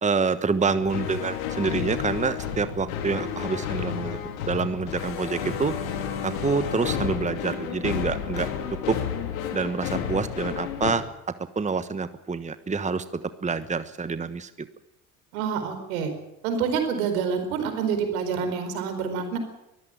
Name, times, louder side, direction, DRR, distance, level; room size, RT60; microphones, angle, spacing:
voice 1, 0.0-4.2 4.5-5.7 6.2-8.5 8.8-9.0 9.5-11.0 11.5-14.7, right 4 dB, 15° right, 13 dB, 1.3 m, -27 dB
sound 1, 0.7-10.9, left 8 dB, 80° left, 3.3 m, -31 dB
voice 2, 15.3-16.1 16.4-19.4, right 6 dB, 75° right, 7 dB, 4.7 m, -27 dB
23.0 x 15.0 x 8.9 m, 0.89 s
hypercardioid pair, 65°, 41 cm